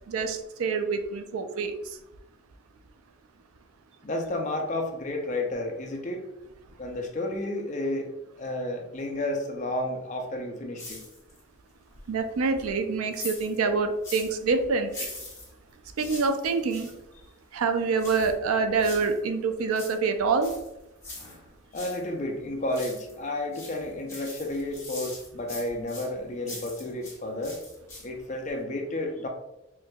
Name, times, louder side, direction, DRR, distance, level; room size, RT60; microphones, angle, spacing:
voice 1, 0.1-1.7 12.1-14.9 16.0-16.9 17.5-20.5, right 4 dB, 85° right, 7 dB, 0.4 m, -26 dB
voice 2, 4.0-6.3 6.8-8.1 8.4-11.0 21.7-27.6 28.0-29.3, left 1 dB, 35° left, 2 dB, 0.4 m, -31 dB
sound 1, 10.8-11.5 11.9-14.4 14.9-17.0 18.0-19.2 19.5-22.0 22.4-23.2 23.5-27.2 27.4-28.3 28.6-28.7, left 2 dB, 15° left, 1.0 m, -42 dB
4.5 x 2.6 x 2.2 m, 0.92 s
head